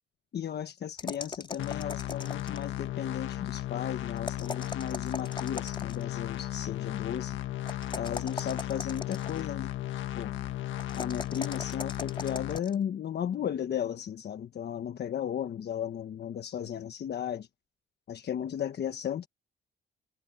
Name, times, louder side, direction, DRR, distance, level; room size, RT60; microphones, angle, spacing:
voice 1, 0.3-7.4 7.9-9.7 10.1-10.4 10.9-17.5 18.1-19.3, left 9 dB, 55° left, 1.2 m, -35 dB
sound 1, 1.0-2.8 4.2-6.1 7.7-9.5 10.8-12.7, left 3 dB, 25° left, 4.2 m, -39 dB
sound 2, 1.6-12.6, left 13 dB, 75° left, 1.6 m, -35 dB
cardioid pair, 90°, 20 cm